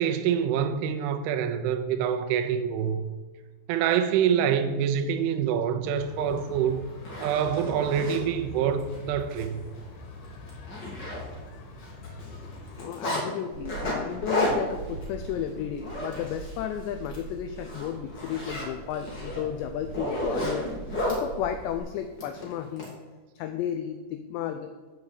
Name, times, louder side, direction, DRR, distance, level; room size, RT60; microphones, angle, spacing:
voice 1, 0.0-3.1 3.7-6.8 7.2-9.7, right 8 dB, 80° right, 3.0 m, -26 dB
sound 1, 5.9-12.9, left 3 dB, 70° left, 3.5 m, -44 dB
Zipper (clothing), 6.4-6.5 6.9-8.2 8.8-9.0 9.3-9.4 9.8-9.9 10.2-11.6 11.8-13.2 13.7-16.6 16.9-17.2 17.6-21.2 22.2-22.9, left 1 dB, 35° left, 1.9 m, -32 dB
voice 2, 12.8-20.7 21.0-22.9 23.4-24.7, left 10 dB, 85° left, 2.5 m, -33 dB
sound 2, 13.5-21.8, right 4 dB, 45° right, 2.9 m, -43 dB
7.4 x 6.7 x 8.0 m
omnidirectional pair, 5.7 m